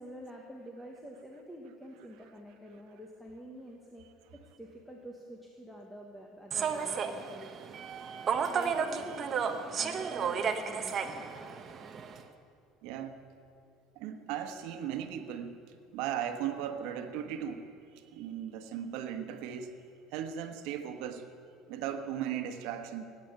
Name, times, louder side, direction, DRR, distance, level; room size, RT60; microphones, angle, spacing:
voice 1, 0.0-4.1 4.3-7.5 8.5-11.3, equal, 5° left, 0 dB, 1.1 m, -47 dB
Human voice / Subway metro underground, 6.5-12.2, right 6 dB, 25° right, 0.9 m, -33 dB
voice 2, 12.8-13.2 13.9-15.6 15.9-19.7 20.1-21.2 21.7-23.0, right 9 dB, 65° right, 7 dB, 1.3 m, -37 dB
17.5 x 8.8 x 9.0 m, 2.4 s
cardioid pair, 175°, 0 cm